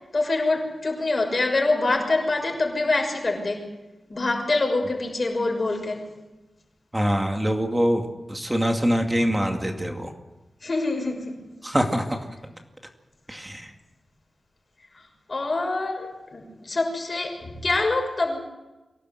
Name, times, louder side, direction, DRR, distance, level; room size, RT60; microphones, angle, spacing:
voice 1, 0.1-3.7 4.1-6.0 10.6-11.4 15.3-18.4, left 2 dB, 35° left, 2 dB, 6.3 m, -25 dB
voice 2, 6.9-10.1 11.6-12.3 13.3-13.7, equal, 10° right, 3 dB, 2.3 m, -24 dB
24.5 x 17.5 x 8.0 m, 1.1 s
wide cardioid pair, 150°, 0 cm